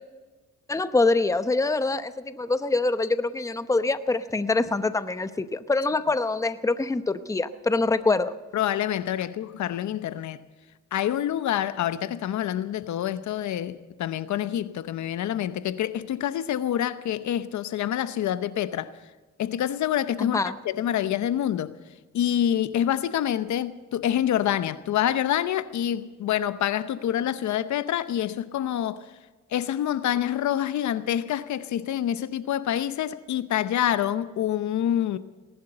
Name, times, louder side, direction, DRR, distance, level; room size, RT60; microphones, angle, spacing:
voice 1, 0.7-8.3 20.2-20.6, left 3 dB, 10° left, 0.8 m, -25 dB
voice 2, 8.5-10.5 10.9-18.9 19.4-21.7 22.1-29.1 29.5-35.2, left 11 dB, 70° left, 0.8 m, -27 dB
19.0 x 11.5 x 6.7 m
cardioid pair, 90°, 30 cm